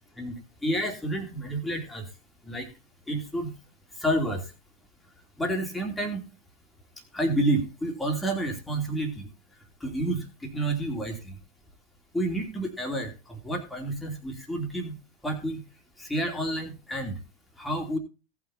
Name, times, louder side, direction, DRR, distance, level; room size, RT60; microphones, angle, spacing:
voice 1, 0.6-2.0 2.4-2.7 3.1-3.5 4.0-4.4 5.4-6.2 7.1-9.3 9.8-11.4 12.1-14.9 15.2-15.6 16.0-17.2 17.6-18.0, right 1 dB, 5° left, 3 dB, 3.1 m, -29 dB
18.0 x 6.0 x 4.1 m, 0.30 s
figure-of-eight pair, 90°, 0 cm